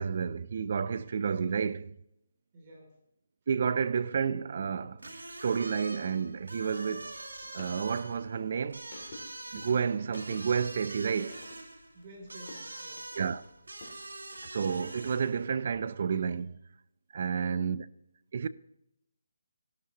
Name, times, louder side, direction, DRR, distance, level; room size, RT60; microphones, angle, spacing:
voice 1, 0.0-2.0 3.5-7.2 7.5-8.9 9.5-11.4 13.2-13.4 14.4-16.6 17.1-17.8 18.3-18.5, right 6 dB, 45° right, 0.5 m, -31 dB
voice 2, 2.5-3.0 11.9-13.1 17.3-17.6, right 1 dB, 30° right, 2.8 m, -51 dB
sound 1, 5.0-15.5, right 2 dB, 90° right, 2.4 m, -45 dB
sound 2, 7.0-14.0 14.3-15.8, left 3 dB, 40° left, 2.7 m, -53 dB
12.5 x 12.0 x 2.9 m
hypercardioid pair, 160°, 0 cm